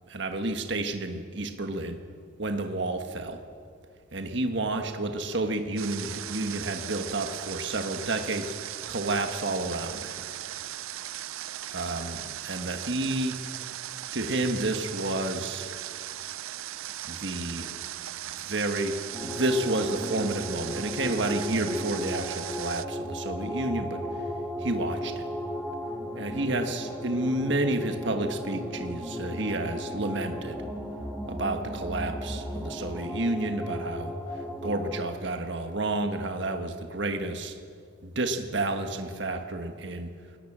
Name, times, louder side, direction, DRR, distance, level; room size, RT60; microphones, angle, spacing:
voice 1, 0.1-2.0 2.4-3.4 4.1-8.5 8.9-10.2 11.7-13.4 14.1-15.7 17.0-17.7 18.4-19.0 19.2-24.0 24.6-25.2 26.1-30.6 31.3-37.5 38.0-40.1, right 2 dB, 55° right, 6 dB, 1.6 m, -30 dB
Water, 5.8-22.8, right 12 dB, 80° right, 0.6 m, -38 dB
sound 1, 19.1-35.1, equal, 5° left, 2.1 m, -35 dB
21.0 x 19.5 x 7.5 m, 2.2 s
head